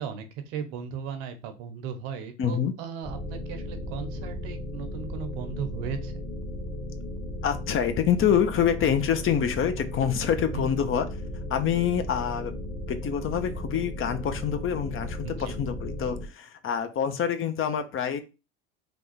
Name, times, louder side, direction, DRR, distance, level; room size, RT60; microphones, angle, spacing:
voice 1, 0.0-6.2 10.5-10.7 15.2-15.5, right 7 dB, 75° right, 7 dB, 0.9 m, -36 dB
voice 2, 2.4-2.7 7.4-11.2 11.5-12.5 12.9-18.2, left 8 dB, 40° left, 9 dB, 0.7 m, -26 dB
sound 1, 3.0-16.3, left 1 dB, 10° left, 1.0 m, -35 dB
3.5 x 2.4 x 4.1 m, 0.29 s
hypercardioid pair, 85°, 33 cm